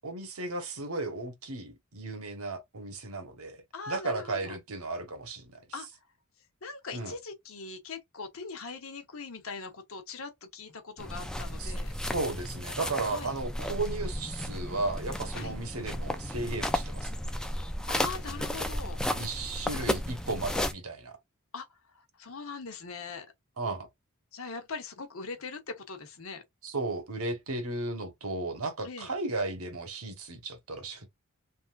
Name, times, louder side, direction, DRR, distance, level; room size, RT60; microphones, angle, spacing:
voice 1, 0.0-3.6 3.9-5.6 6.9-7.1 11.6-11.7 12.1-17.1 19.1-21.2 23.6-23.9 26.6-31.1, right 2 dB, 75° right, 1.2 m, -35 dB
voice 2, 3.7-4.6 5.7-5.9 6.6-11.9 13.1-13.3 15.3-15.6 17.9-19.0 21.5-21.7 21.9-23.3 24.3-26.4 28.8-29.1, left 4 dB, 65° left, 1.0 m, -41 dB
sound 1, 11.0-20.7, equal, 5° left, 0.4 m, -34 dB
3.5 x 2.6 x 2.4 m
head